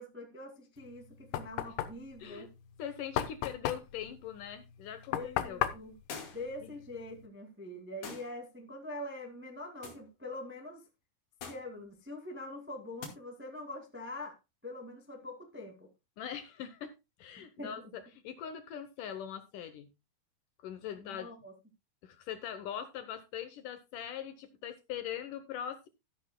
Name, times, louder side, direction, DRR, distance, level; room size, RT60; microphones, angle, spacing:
voice 1, 0.0-2.5 5.1-5.9 6.3-10.8 11.5-14.4 14.6-15.9 17.6-17.9 21.0-21.5, left 1 dB, 10° right, 3 dB, 0.6 m, -44 dB
Knock, 0.8-7.3, left 12 dB, 90° left, 3.0 m, -37 dB
voice 2, 2.8-5.6 6.6-6.7 16.2-19.9 20.6-21.3 22.0-25.9, left 9 dB, 70° left, 10 dB, 2.1 m, -42 dB
sound 1, 6.1-6.6 8.0-8.4 9.8-10.1 11.4-11.7 13.0-13.2, left 5 dB, 50° left, 3.6 m, -44 dB
13.0 x 12.0 x 2.2 m, 0.23 s
omnidirectional pair, 4.5 m